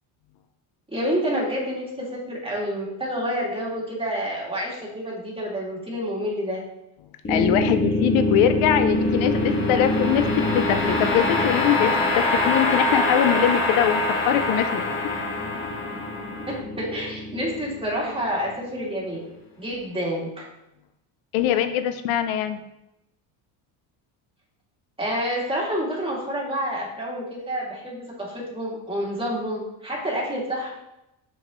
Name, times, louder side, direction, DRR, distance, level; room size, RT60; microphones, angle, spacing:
voice 1, 0.9-6.6 16.8-19.2 19.6-20.4 25.0-30.7, equal, 10° right, -5 dB, 2.6 m, -28 dB
sound 1, 7.2-18.4, left 2 dB, 25° left, 1.7 m, -24 dB
voice 2, 7.3-15.3 21.3-22.6, left 10 dB, 80° left, 9 dB, 0.7 m, -23 dB
6.8 x 6.4 x 3.2 m, 0.87 s
cardioid pair, 110°, 47 cm